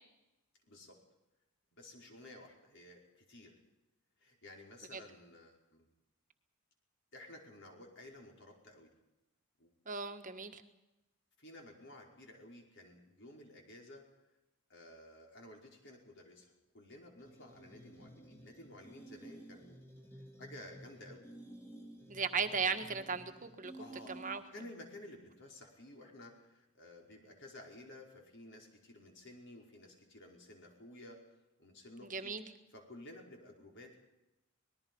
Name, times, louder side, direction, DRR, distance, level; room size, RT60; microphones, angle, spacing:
voice 1, 0.6-1.0 1.7-3.6 4.2-5.9 7.1-8.9 9.6-9.7 11.4-14.0 14.7-19.9 20.1-21.3 22.1-22.2 23.8-31.2 31.6-32.3 32.7-34.0, left 1 dB, 55° left, 1 dB, 5.0 m, -54 dB
voice 2, 9.8-10.6 22.1-23.7 24.1-24.4 32.0-32.4, right 5 dB, 35° right, 7 dB, 1.5 m, -36 dB
sound 1, 17.2-24.7, right 1 dB, 10° left, 2.1 m, -54 dB
25.5 x 20.0 x 5.5 m, 0.97 s
head